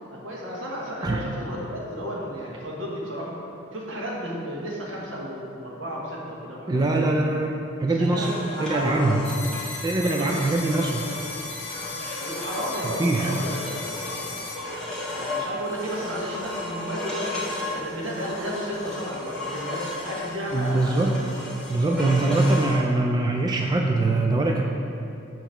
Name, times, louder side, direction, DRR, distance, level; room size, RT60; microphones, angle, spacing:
voice 1, 0.1-3.3 3.7-7.2 8.0-9.3 9.9-10.5 12.2-13.8 14.1-17.4 17.7-21.0 22.0-22.5, equal, 80° right, -4 dB, 1.4 m, -33 dB
voice 2, 6.7-8.3 8.6-9.2 9.8-11.0 13.0-13.3 20.5-21.2 21.7-24.6, right 2 dB, 20° right, 1 dB, 0.3 m, -23 dB
sound 1, 8.2-22.8, left 2 dB, 5° left, 1.3 m, -34 dB
sound 2, 9.2-14.6, left 3 dB, 60° left, 1.5 m, -36 dB
7.8 x 3.1 x 5.7 m, 2.7 s
head